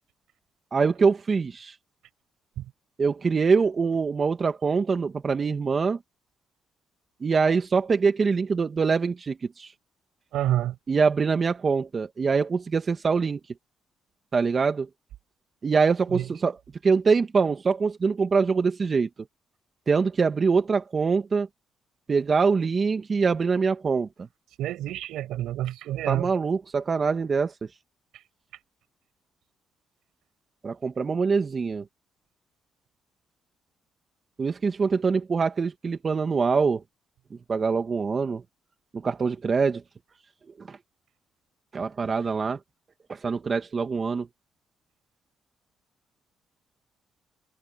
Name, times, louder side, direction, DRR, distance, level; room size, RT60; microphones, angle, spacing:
voice 1, 0.7-1.7 3.0-6.0 7.2-9.7 10.9-13.4 14.3-14.9 15.6-16.6 16.8-19.1 19.9-21.5 22.1-24.1 26.1-27.5 30.6-31.8 34.4-36.8 37.5-38.4 38.9-39.8 40.6-40.8 41.7-42.6 43.1-44.3, right 5 dB, 40° right, 1.9 m, -24 dB
voice 2, 10.3-10.7 16.1-16.3 24.6-26.3, right 13 dB, 85° right, 5.9 m, -28 dB
cardioid pair, 90°, 0 cm